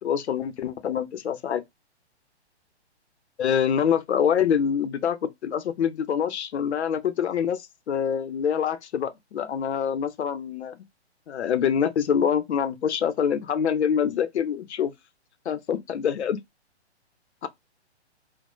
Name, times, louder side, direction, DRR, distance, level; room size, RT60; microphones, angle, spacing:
voice 1, 0.0-1.6 3.4-10.8 11.3-14.9 15.5-16.4 17.4-17.5, left 8 dB, 75° left, 0.6 m, -25 dB
2.9 x 2.1 x 2.2 m
hypercardioid pair, 135°, 34 cm